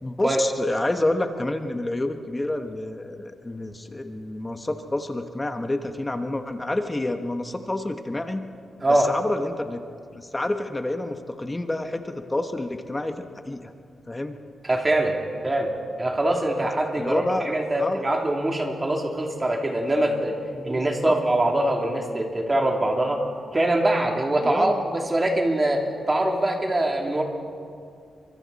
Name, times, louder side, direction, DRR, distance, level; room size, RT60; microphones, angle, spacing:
voice 1, 0.0-8.4 8.9-9.8 10.1-13.7 14.1-14.4 16.9-17.5 17.8-18.1 20.6-21.1 24.4-24.8, left 1 dB, 15° left, 6 dB, 1.1 m, -28 dB
voice 2, 14.6-15.2 15.4-15.7 16.0-23.2 23.5-27.2, right 1 dB, 20° right, 1 dB, 3.0 m, -23 dB
29.5 x 24.5 x 4.2 m, 2.4 s
wide cardioid pair, 130°, 0 cm